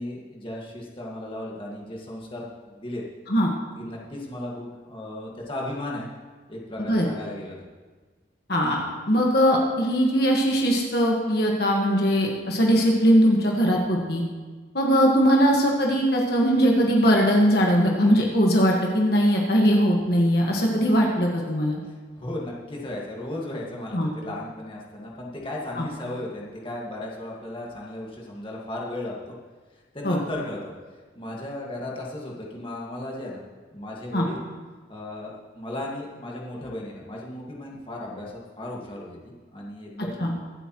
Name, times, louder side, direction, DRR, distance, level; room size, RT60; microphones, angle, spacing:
voice 1, 0.0-3.0 3.8-6.1 6.5-7.6 21.9-29.4 29.9-30.7 31.2-33.4 33.7-34.5 34.9-40.3, left 1 dB, 30° left, -3 dB, 1.9 m, -35 dB
voice 2, 8.5-14.2 14.7-21.8 23.9-24.1 25.8-25.9 30.0-30.2 34.1-34.3 40.2-40.3, equal, 60° left, -1 dB, 1.6 m, -20 dB
23.5 x 8.1 x 3.1 m, 1.4 s
head